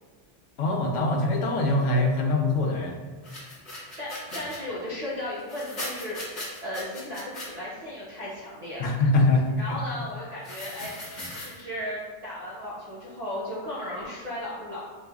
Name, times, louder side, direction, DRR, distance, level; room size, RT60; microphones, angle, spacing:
voice 1, 0.6-3.0 3.3-3.4 8.8-9.5 11.2-11.3, left 2 dB, 90° left, 2 dB, 1.0 m, -23 dB
sound 1, 3.2-4.6 5.4-7.5 10.4-11.6, left 1 dB, 40° left, 1.1 m, -38 dB
voice 2, 3.7-6.2 6.6-8.9 9.6-11.0 11.3-14.8, left 1 dB, 40° right, -8 dB, 0.8 m, -35 dB
6.5 x 2.6 x 2.3 m, 1.4 s
omnidirectional pair, 1.2 m